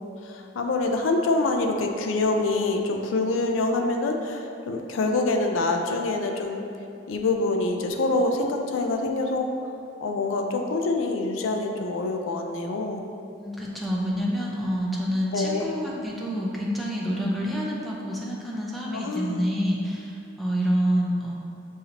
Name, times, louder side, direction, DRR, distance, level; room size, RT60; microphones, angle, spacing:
voice 1, 0.0-6.6 7.1-9.5 10.0-13.0 15.3-15.8 18.9-19.5, left 2 dB, 80° left, 4 dB, 0.4 m, -26 dB
voice 2, 13.4-21.3, equal, ahead, -4 dB, 0.5 m, -27 dB
6.4 x 2.8 x 2.8 m, 2.6 s
head